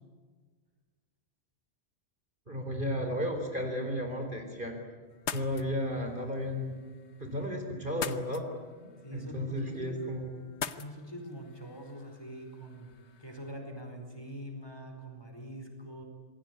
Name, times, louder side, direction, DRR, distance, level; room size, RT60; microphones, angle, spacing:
voice 1, 2.5-4.8 5.3-6.8 7.2-8.5 8.8-10.3, equal, 45° right, 4 dB, 4.1 m, -34 dB
sound 1, 5.1-13.5, left 7 dB, 70° left, 1.3 m, -44 dB
voice 2, 9.0-10.1 10.8-12.9 13.2-16.0, equal, 20° left, 3 dB, 4.9 m, -44 dB
27.0 x 21.0 x 9.6 m, 1.5 s
omnidirectional pair, 1.2 m